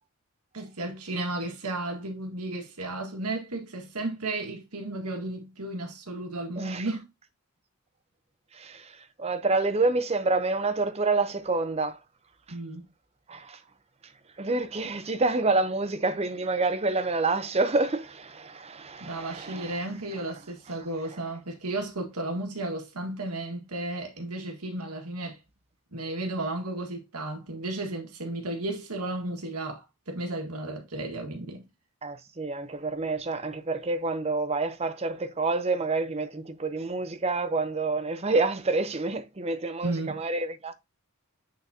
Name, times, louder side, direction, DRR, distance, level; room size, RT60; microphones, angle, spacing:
voice 1, 0.5-7.1 12.5-12.9 19.0-25.4 25.9-31.7 39.8-40.2, right 2 dB, 90° right, 1.8 m, -34 dB
voice 2, 6.6-6.9 8.5-12.0 13.3-13.6 14.4-19.8 32.0-40.7, right 3 dB, 30° right, 0.6 m, -28 dB
9.1 x 3.9 x 2.8 m
head